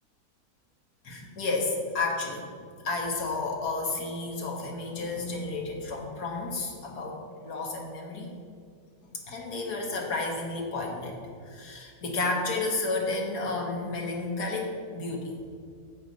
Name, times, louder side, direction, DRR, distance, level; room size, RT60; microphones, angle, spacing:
voice 1, 1.0-2.5 2.8-8.3 9.3-15.3, left 3 dB, 85° left, 0 dB, 2.0 m, -31 dB
10.5 x 8.2 x 4.1 m, 2.2 s
omnidirectional pair, 1.6 m